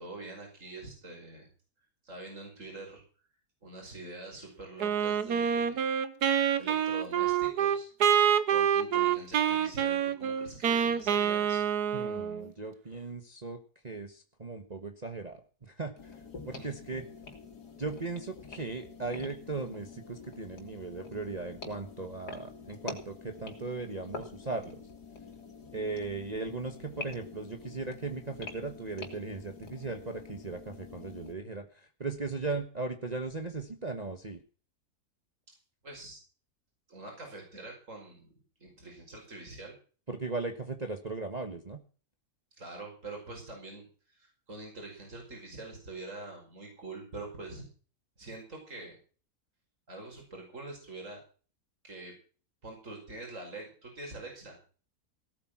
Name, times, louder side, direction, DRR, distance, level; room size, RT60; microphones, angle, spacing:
voice 1, 0.0-1.5 2.0-3.0 3.6-5.8 6.6-7.9 8.5-11.7 16.5-16.7 35.8-36.2 36.9-38.3 38.6-39.8 42.6-47.7 48.2-49.0 49.9-51.2 51.8-52.1 52.6-54.6, right 2 dB, 50° right, 1 dB, 5.9 m, -45 dB
Wind instrument woodwind instrument, 4.8-12.5, right 8 dB, 85° right, 1.6 m, -27 dB
voice 2, 11.9-13.6 13.8-15.4 15.7-16.0 16.4-17.0 17.8-24.8 25.7-31.7 32.0-34.4 40.1-41.8, right 3 dB, 25° right, 6 dB, 1.4 m, -37 dB
sound 1, 16.0-31.3, left 4 dB, 90° left, 3.2 m, -47 dB
17.5 x 8.7 x 6.0 m, 0.40 s
omnidirectional pair, 1.6 m